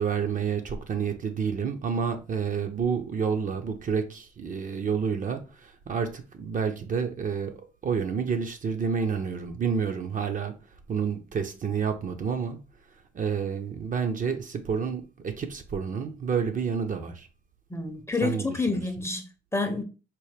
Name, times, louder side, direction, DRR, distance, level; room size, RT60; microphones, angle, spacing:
voice 1, 0.0-10.5 10.9-12.6 13.1-17.3 18.2-18.8, right 6 dB, 40° right, 0.6 m, -29 dB
voice 2, 17.7-19.8, left 3 dB, 15° left, 0.6 m, -29 dB
4.4 x 2.1 x 3.2 m
cardioid pair, 90°, 20 cm